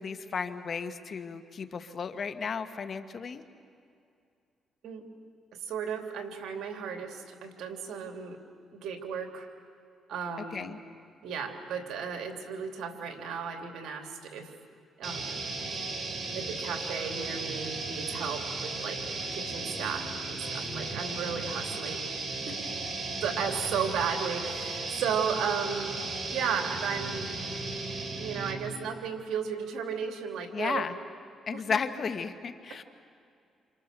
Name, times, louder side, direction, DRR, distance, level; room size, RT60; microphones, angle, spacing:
voice 1, 0.0-3.4 10.5-10.8 30.5-31.0 31.5-32.8, left 6 dB, 50° left, 9 dB, 1.6 m, -34 dB
voice 2, 5.6-8.4 8.7-9.5 10.1-10.7 11.2-14.5 15.0-15.4 16.3-19.0 19.3-22.1 22.5-22.6 23.2-26.0 26.3-27.4 28.2-30.9 31.5-31.6, right 7 dB, 75° right, 4 dB, 3.2 m, -34 dB
sound 1, 15.0-28.7, right 3 dB, 40° right, 4.2 m, -35 dB
28.5 x 28.0 x 6.9 m, 2.5 s
cardioid pair, 90°, 0 cm